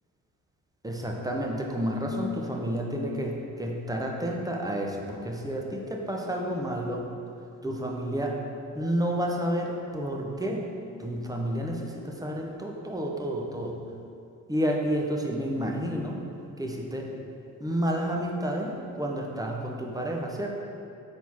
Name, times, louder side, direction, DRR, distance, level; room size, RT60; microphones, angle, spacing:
voice 1, 0.8-7.0 7.6-8.4 8.7-10.7 11.0-13.8 14.5-16.2 16.6-17.1 17.6-20.5, equal, 10° right, 0 dB, 0.9 m, -30 dB
5.6 x 4.1 x 4.6 m, 2.6 s
hypercardioid pair, 50°, 42 cm